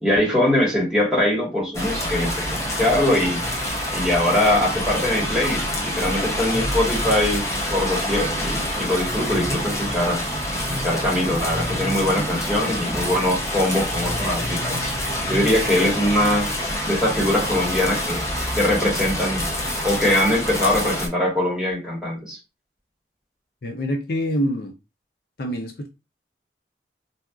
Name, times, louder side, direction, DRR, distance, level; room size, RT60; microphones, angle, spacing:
voice 1, 0.0-3.4 3.9-10.2 10.7-14.9 15.2-16.5 16.8-18.2 18.6-19.5 19.8-22.4, left 1 dB, 5° right, 1.3 m, -22 dB
sound 1, 1.7-21.1, equal, 15° left, 0.6 m, -26 dB
voice 2, 23.6-24.7 25.4-25.9, equal, 55° left, 0.5 m, -25 dB
4.1 x 2.3 x 2.3 m
head